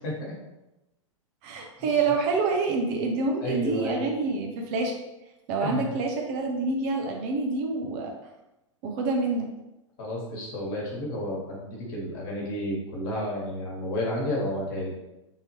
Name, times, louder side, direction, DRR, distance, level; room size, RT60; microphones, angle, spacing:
voice 1, 0.0-0.3 1.8-1.9 3.4-4.1 5.6-5.9 10.0-14.9, left 1 dB, 45° left, -3 dB, 1.5 m, -31 dB
voice 2, 1.4-4.9 5.5-8.1 8.8-9.5, right 3 dB, 35° right, 1 dB, 0.6 m, -27 dB
3.7 x 2.8 x 3.1 m, 0.94 s
figure-of-eight pair, 100°, 16 cm